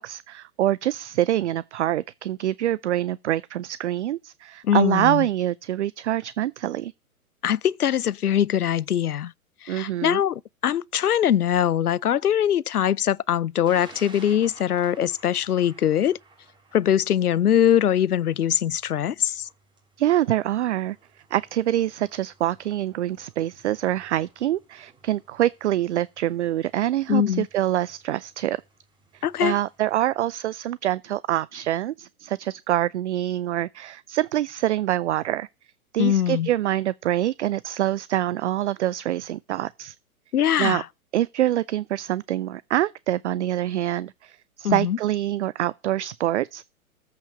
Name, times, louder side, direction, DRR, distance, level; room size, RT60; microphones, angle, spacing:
voice 1, 0.0-6.9 9.7-10.2 20.0-21.0 21.3-28.6 29.1-35.5 35.9-39.9 40.6-40.8 41.1-46.6, right 13 dB, 50° right, 0.5 m, -25 dB
voice 2, 4.6-5.3 7.4-9.3 9.6-16.2 16.7-19.5 27.1-27.5 29.2-29.5 36.0-36.5 40.3-40.8 44.6-45.0, left 10 dB, 85° left, 0.6 m, -22 dB
Thunder, 13.7-29.9, right 3 dB, 10° right, 3.0 m, -54 dB
13.5 x 4.9 x 6.7 m
figure-of-eight pair, 115°, 44 cm